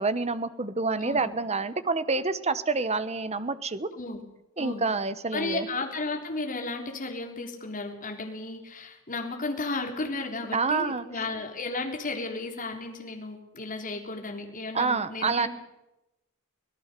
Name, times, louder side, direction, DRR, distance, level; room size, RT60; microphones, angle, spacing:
voice 1, 0.0-3.9 4.6-5.7 10.5-11.0 14.7-15.5, right 4 dB, 30° right, 13 dB, 1.1 m, -27 dB
voice 2, 5.3-15.5, left 3 dB, 40° left, 3 dB, 3.6 m, -34 dB
25.5 x 18.0 x 6.8 m, 0.91 s
head